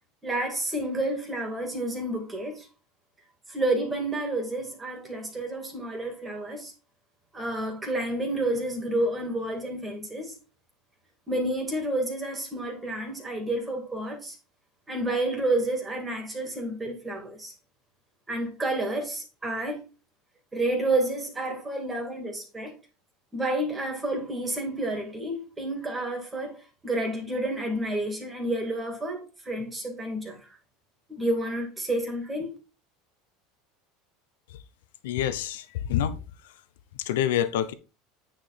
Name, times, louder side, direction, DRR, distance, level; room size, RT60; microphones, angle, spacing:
voice 1, 0.2-2.7 3.5-6.7 7.3-10.4 11.3-14.3 14.9-17.5 18.3-19.8 20.5-22.8 23.3-26.6 26.8-30.6 31.1-32.6, right 1 dB, 15° right, 2.6 m, -30 dB
voice 2, 35.0-36.2 37.0-37.7, left 11 dB, 85° left, 0.8 m, -26 dB
9.1 x 4.8 x 4.2 m
supercardioid pair, 130°, 0 cm